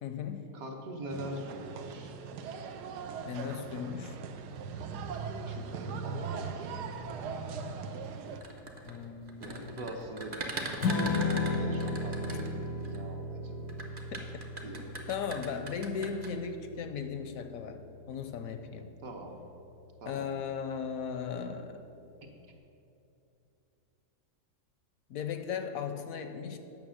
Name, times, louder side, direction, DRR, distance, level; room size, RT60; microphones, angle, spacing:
voice 1, 0.0-0.6 3.2-4.3 8.9-9.7 12.3-12.4 14.1-14.3 14.6-14.7 15.1-18.9 20.1-21.8 25.1-26.6, left 6 dB, 70° left, 8 dB, 0.9 m, -37 dB
voice 2, 0.5-2.2 5.5-6.8 9.4-13.7 14.6-14.9 19.0-19.3 20.0-20.3, right 1 dB, 60° right, 2 dB, 1.5 m, -43 dB
sound 1, 1.1-8.4, right 5 dB, 85° right, 1.2 m, -39 dB
sound 2, 8.3-13.0 13.7-16.3, right 2 dB, 40° right, 0.9 m, -39 dB
Strum, 10.8-17.1, left 3 dB, 90° left, 1.6 m, -34 dB
8.8 x 6.4 x 6.3 m, 2.9 s
omnidirectional pair, 1.7 m